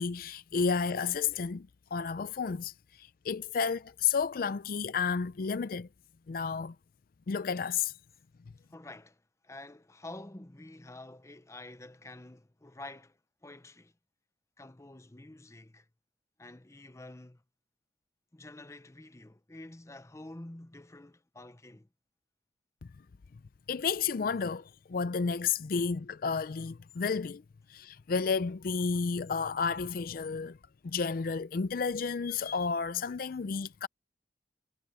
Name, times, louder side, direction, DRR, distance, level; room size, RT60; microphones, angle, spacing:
voice 1, 0.0-2.7 3.0-5.9 6.3-6.7 7.3-7.9 23.7-27.4 27.7-30.6 30.8-33.9, left 5 dB, 55° left, 0.4 m, -31 dB
voice 2, 8.7-13.9 14.6-15.9 16.4-17.4 18.3-21.9, left 2 dB, 15° left, 0.7 m, -48 dB
head